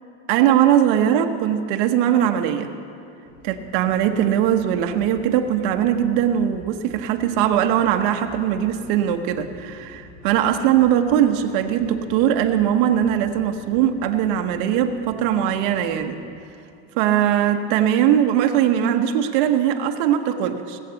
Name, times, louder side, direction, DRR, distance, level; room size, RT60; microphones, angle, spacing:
voice 1, 0.3-2.7 3.4-16.2 16.9-20.8, right 10 dB, 55° right, 5 dB, 1.0 m, -20 dB
sound 1, 3.2-16.1, left 1 dB, 50° left, 3.5 m, -46 dB
18.0 x 8.1 x 8.2 m, 2.5 s
supercardioid pair, 170°, 31 cm